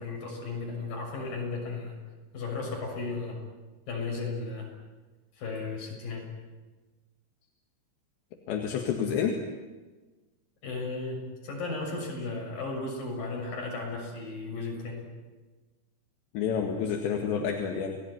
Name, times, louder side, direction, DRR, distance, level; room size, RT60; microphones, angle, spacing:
voice 1, 0.0-2.0 2.3-3.4 3.9-4.7 5.4-6.3 10.6-15.0, left 3 dB, 50° left, 0 dB, 8.3 m, -35 dB
voice 2, 8.5-9.4 16.3-18.0, left 7 dB, 75° left, 3 dB, 4.1 m, -29 dB
30.0 x 19.0 x 9.8 m, 1.3 s
omnidirectional pair, 5.1 m